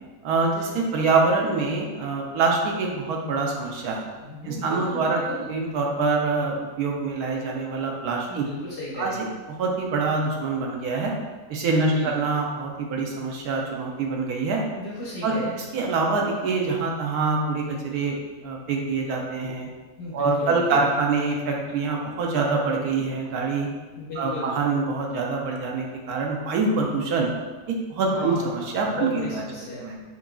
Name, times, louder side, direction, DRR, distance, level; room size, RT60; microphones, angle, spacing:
voice 1, 0.2-4.1 4.4-5.2 5.5-8.4 8.9-11.1 11.5-14.6 15.2-18.2 18.4-19.7 20.1-23.7 24.2-27.3 27.7-29.4 29.8-30.0, right 3 dB, 75° right, 0 dB, 1.1 m, -25 dB
voice 2, 4.2-5.5 8.3-9.2 11.7-12.1 14.8-15.5 20.0-20.9 24.0-24.6 28.1-28.5 28.8-29.9, left 1 dB, 50° left, -6 dB, 0.9 m, -35 dB
5.8 x 2.5 x 2.2 m, 1.3 s
omnidirectional pair, 1.7 m